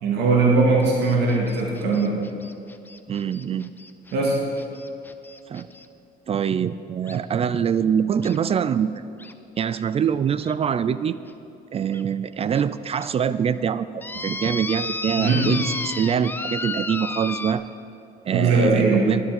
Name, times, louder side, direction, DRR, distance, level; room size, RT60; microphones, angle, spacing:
voice 1, 0.0-2.2 4.1-4.4 15.2-15.5 18.3-19.1, right 3 dB, 80° right, -1 dB, 2.1 m, -20 dB
sound 1, 0.8-5.9 7.1-7.2 8.2-8.4 9.2-9.3 9.8-9.9 10.4-10.5 11.3-11.4 11.9-12.0 12.5-12.6 13.0-13.1 14.0-17.5, left 2 dB, 10° left, 0.6 m, -33 dB
voice 2, 3.1-3.7 5.5-5.7 6.3-9.0 9.6-11.2 11.7-17.6 18.2-19.2, right 8 dB, 35° right, 15 dB, 0.4 m, -24 dB
11.0 x 9.7 x 7.6 m, 2.6 s
cardioid pair, 110°, 17 cm